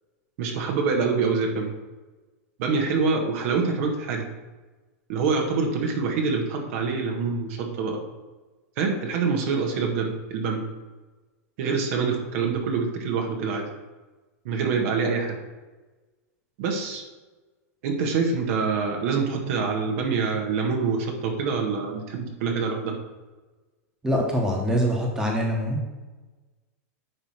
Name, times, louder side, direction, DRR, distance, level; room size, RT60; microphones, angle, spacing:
voice 1, 0.4-1.7 2.6-4.3 5.1-8.0 8.8-10.6 11.6-13.6 14.5-15.4 16.6-17.0 17.8-23.0, right 5 dB, 55° right, 2 dB, 1.6 m, -25 dB
voice 2, 24.0-25.8, equal, 5° right, -1 dB, 1.4 m, -24 dB
9.8 x 3.4 x 6.0 m, 1.2 s
supercardioid pair, 140°, 8 cm